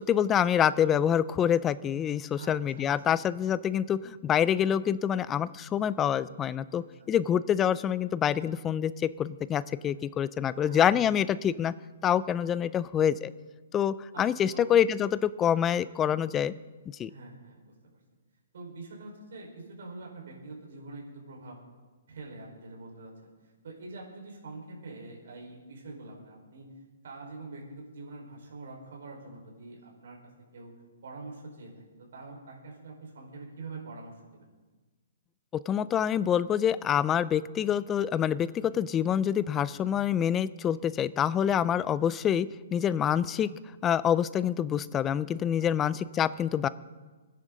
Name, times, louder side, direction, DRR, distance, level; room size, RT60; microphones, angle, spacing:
voice 1, 0.0-11.7 12.0-13.3 13.7-16.5 17.0-17.1 35.7-43.5 43.8-46.7, left 9 dB, 15° left, 17 dB, 0.4 m, -26 dB
voice 2, 2.3-2.9 6.8-7.1 10.5-10.8 14.1-14.2 14.5-14.7 17.1-17.7 18.5-21.6 22.1-23.1 23.6-26.7 27.0-30.2 30.5-30.7 31.0-34.5 41.6-41.9 45.6-45.7, right 3 dB, 70° right, -1 dB, 4.7 m, -45 dB
23.5 x 10.0 x 3.9 m, 1.3 s
hypercardioid pair, 160°, 0 cm